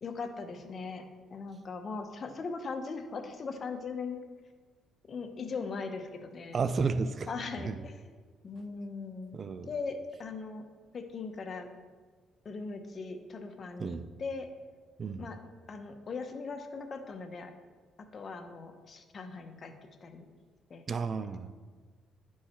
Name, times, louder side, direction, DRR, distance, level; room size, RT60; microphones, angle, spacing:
voice 1, 0.0-4.2 5.1-6.6 7.3-8.0 8.4-9.4 9.7-10.7 10.9-11.7 12.4-14.5 15.2-15.4 15.7-17.5 18.0-19.7 20.0-20.2 20.7-20.8, left 4 dB, 40° left, 6 dB, 0.8 m, -39 dB
voice 2, 6.5-7.3 7.6-7.8 9.3-9.7 13.8-14.0 15.0-15.3 20.9-21.5, right 5 dB, 40° right, 12 dB, 0.4 m, -32 dB
9.9 x 4.7 x 4.3 m, 1.5 s
cardioid pair, 100°, 0 cm